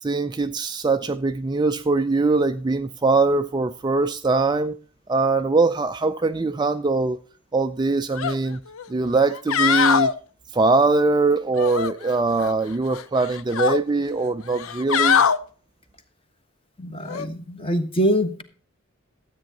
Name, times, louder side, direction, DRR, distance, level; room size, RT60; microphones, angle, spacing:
voice 1, 0.0-4.8 5.1-7.2 7.5-8.6 8.9-10.1 10.5-15.2, right 3 dB, 20° right, 0.4 m, -22 dB
sound 1, 8.2-8.4 8.8-8.9 9.3-10.1 11.6-12.5 12.9-13.8 14.5-15.4 17.1-17.3, left 7 dB, 65° left, 0.6 m, -22 dB
voice 2, 16.8-18.4, equal, 25° left, 1.3 m, -24 dB
13.0 x 8.3 x 3.9 m
head